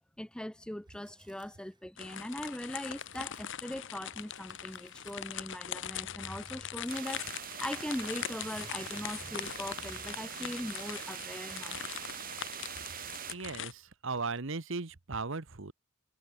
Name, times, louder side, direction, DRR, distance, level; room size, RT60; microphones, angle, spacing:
voice 1, 0.2-11.8, left 1 dB, 5° left, 0.4 m, -40 dB
sound 1, 0.6-3.8 4.1-5.5 6.2-9.3 9.6-11.8 12.4-13.6 14.2-14.4, right 3 dB, 20° right, 5.3 m, -64 dB
sound 2, 2.0-13.7, left 10 dB, 60° left, 1.1 m, -42 dB
sound 3, 6.9-13.3, right 9 dB, 40° right, 1.8 m, -43 dB
voice 2, 13.3-15.7, right 4 dB, 60° right, 1.2 m, -37 dB
head